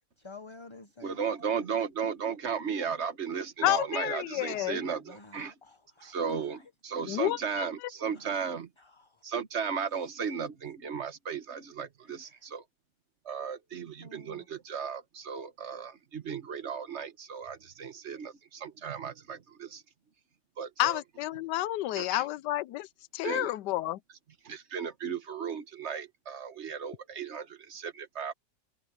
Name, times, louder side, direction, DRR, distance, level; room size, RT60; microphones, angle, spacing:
voice 1, 0.2-1.3 4.4-6.2 6.5-6.6 8.1-8.4 8.8-9.2 12.2-12.4 14.0-14.5, left 3 dB, 20° left, 0.9 m, -51 dB
voice 2, 1.0-5.5 6.0-8.7 9.2-12.6 13.2-19.8 20.6-21.0 22.0-22.2 23.2-23.5 24.4-28.3, right 6 dB, 45° right, 1.6 m, -35 dB
voice 3, 3.6-4.8 7.1-7.7 20.8-22.9 23.1-24.0, left 15 dB, 85° left, 1.2 m, -30 dB
omnidirectional pair, 1.8 m